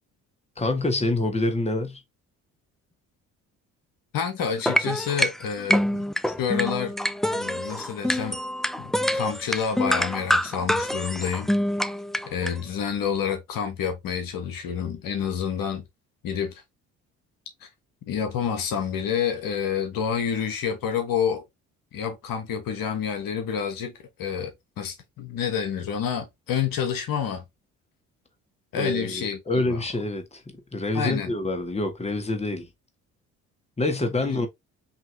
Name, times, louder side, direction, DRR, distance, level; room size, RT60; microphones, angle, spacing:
voice 1, 0.6-2.0 28.7-32.7 33.8-34.5, left 2 dB, 15° left, 1.5 m, -27 dB
voice 2, 4.1-6.0 6.4-6.9 7.3-8.4 8.8-11.5 12.3-15.8 16.2-16.6 17.6-17.7 18.1-21.4 21.9-23.9 24.2-27.4 28.7-29.8 30.9-31.3 34.2-34.4, left 7 dB, 65° left, 1.2 m, -28 dB
sound 1, 4.4-12.6, equal, ahead, 0.3 m, -26 dB
5.6 x 2.9 x 2.7 m
hypercardioid pair, 60°, 36 cm